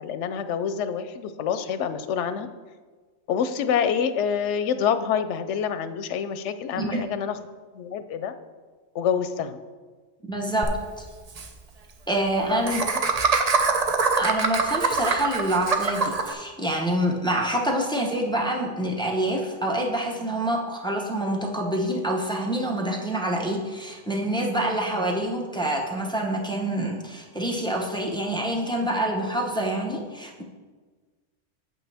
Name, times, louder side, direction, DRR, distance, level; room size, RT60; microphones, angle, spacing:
voice 1, 0.0-2.5 3.3-7.3 7.7-8.3 8.9-9.6 12.5-12.7, left 7 dB, 90° left, 11 dB, 0.9 m, -27 dB
voice 2, 6.7-7.2 10.3-11.0 12.1-12.8 14.2-30.4, right 1 dB, 5° left, -1 dB, 0.8 m, -26 dB
Laughter, 10.6-10.7 11.0-11.1 11.3-11.5 12.7-16.3, right 4 dB, 40° right, 0.6 m, -23 dB
8.6 x 7.6 x 3.4 m, 1.4 s
omnidirectional pair, 1.2 m